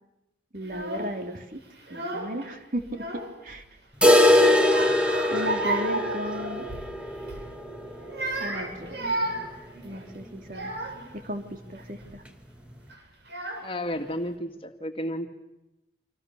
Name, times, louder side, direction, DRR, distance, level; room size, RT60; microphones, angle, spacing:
voice 1, 0.5-1.6 1.9-3.0 3.4-3.6 5.3-6.7 8.4-9.0 9.8-10.7 11.2-12.2, equal, 50° right, 5 dB, 3.2 m, -34 dB
Child speech kid speaking / Crying sobbing, 0.6-1.2 1.8-2.5 2.8-3.6 4.1-6.9 7.2-7.5 8.0-11.1 11.8-12.1 12.9-13.0 13.3-14.0, right 2 dB, 70° right, 7.9 m, -33 dB
sound 1, 4.0-9.8 10.1-10.2 10.6-10.7 11.2-11.3 12.1-12.2, left 1 dB, 5° right, 2.2 m, -23 dB
voice 2, 13.6-15.3, equal, 30° left, 6 dB, 2.2 m, -32 dB
29.5 x 26.5 x 7.2 m, 0.92 s
head